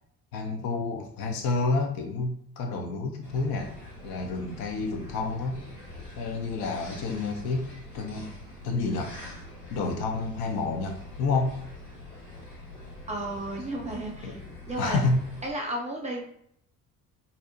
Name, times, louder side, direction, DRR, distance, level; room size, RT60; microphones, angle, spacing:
voice 1, 0.3-3.7 4.0-5.6 6.2-7.7 7.9-8.3 8.6-9.2 9.7-11.6 14.2-14.4 14.8-15.2, left 3 dB, 50° left, 4 dB, 0.6 m, -29 dB
sound 1, 3.2-15.5, left 1 dB, 90° left, 0.8 m, -45 dB
voice 2, 13.1-14.4 14.7-15.0 15.4-16.2, right 1 dB, 15° right, -1 dB, 0.5 m, -33 dB
2.6 x 2.0 x 2.6 m, 0.68 s
figure-of-eight pair, 50°, 47 cm